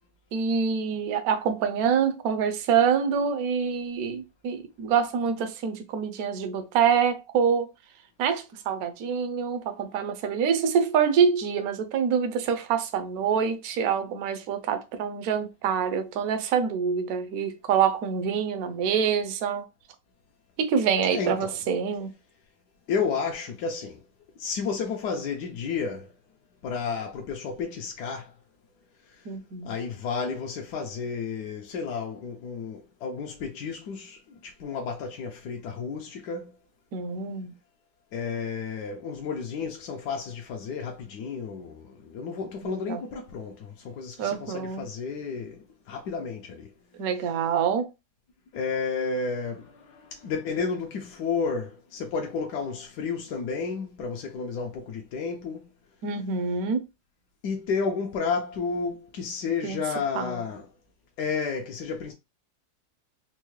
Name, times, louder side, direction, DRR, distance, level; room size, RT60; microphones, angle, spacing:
voice 1, 0.3-7.7 8.2-19.7 20.6-22.1 29.3-29.7 36.9-37.5 42.6-43.0 44.2-44.8 47.0-47.9 56.0-56.8 59.6-59.8 60.2-60.5, right 7 dB, 65° right, 1.0 m, -26 dB
voice 2, 21.1-21.6 22.9-24.0 24.4-26.1 26.6-28.3 29.1-29.2 29.6-36.5 38.1-46.7 48.5-55.7 57.4-60.7 61.2-62.1, left 5 dB, 75° left, 1.2 m, -32 dB
4.4 x 2.1 x 3.1 m
omnidirectional pair, 1.9 m